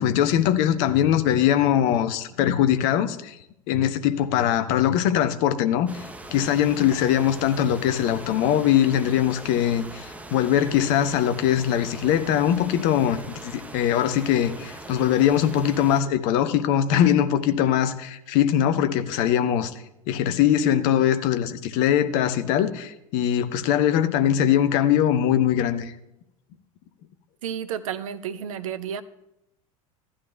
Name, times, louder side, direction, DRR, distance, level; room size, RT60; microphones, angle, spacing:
voice 1, 0.0-3.4 3.7-5.9 6.3-19.7 20.1-25.9, left 10 dB, 50° left, 0.8 m, -21 dB
sound 1, 5.9-16.0, right 2 dB, 5° right, 0.8 m, -41 dB
voice 2, 27.4-29.0, right 8 dB, 65° right, 0.6 m, -31 dB
15.0 x 11.5 x 2.3 m
figure-of-eight pair, 75°, 19 cm